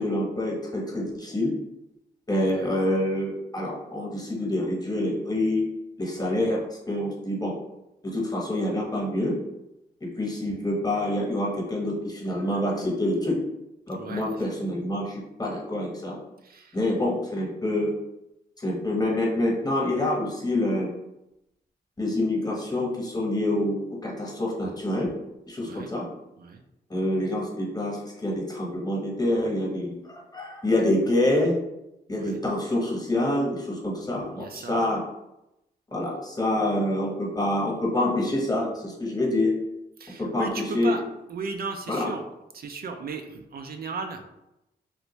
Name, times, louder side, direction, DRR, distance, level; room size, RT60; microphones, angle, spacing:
voice 1, 0.0-1.5 2.3-5.6 6.0-6.6 6.9-7.5 8.0-9.3 10.2-13.4 13.9-16.2 16.7-17.9 18.6-20.9 22.0-25.1 25.5-26.0 26.9-31.5 32.1-35.0 35.9-39.5 40.2-40.9 41.9-42.1, left 1 dB, 20° left, -2 dB, 1.1 m, -26 dB
voice 2, 13.9-14.4 16.4-16.9 25.6-25.9 26.4-26.6 32.2-32.4 34.3-34.8 40.0-41.0 41.3-42.3 42.5-44.2, right 4 dB, 60° right, 5 dB, 0.4 m, -36 dB
3.2 x 2.5 x 3.1 m, 0.90 s
cardioid pair, 70°, 18 cm